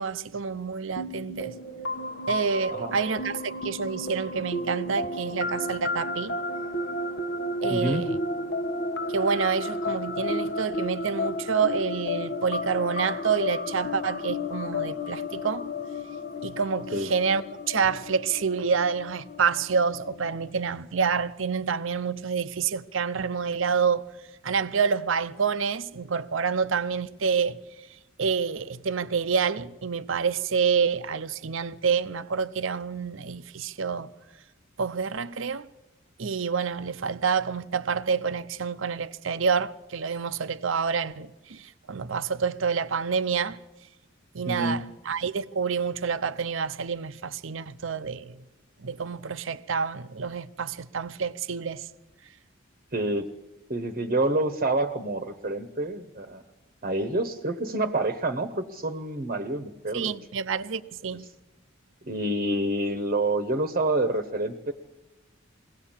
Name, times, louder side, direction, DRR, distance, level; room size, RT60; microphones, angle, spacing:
voice 1, 0.0-1.6 2.3-6.3 7.6-8.2 9.1-15.7 16.4-24.0 24.4-27.6 28.2-34.1 34.8-35.7 36.2-43.6 44.3-48.4 48.8-51.9 59.9-61.2, right 6 dB, 70° right, 0.7 m, -28 dB
sound 1, 1.0-20.5, left 2 dB, 60° left, 1.1 m, -33 dB
voice 2, 7.7-8.0 16.9-17.1 44.4-44.8 52.9-53.3 53.7-56.4 56.8-60.1 62.0-64.7, right 2 dB, 40° right, 1.0 m, -27 dB
22.0 x 17.0 x 7.3 m
head